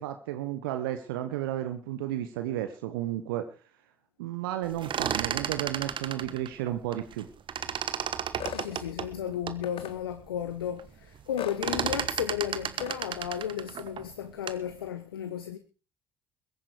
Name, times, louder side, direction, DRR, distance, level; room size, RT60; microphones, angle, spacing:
voice 1, 0.0-3.5 4.2-7.3, right 12 dB, 70° right, 1.1 m, -33 dB
sound 1, 4.7-7.2 7.5-9.6 10.1-10.2 10.5-10.9 11.2-14.7, right 8 dB, 40° right, 1.3 m, -33 dB
sound 2, 8.4-8.7 9.6-9.9 11.4-11.6 12.8-13.0, left 9 dB, 45° left, 1.5 m, -37 dB
voice 2, 8.5-15.6, left 9 dB, 75° left, 0.9 m, -34 dB
22.0 x 9.2 x 4.9 m
figure-of-eight pair, 55°, 12 cm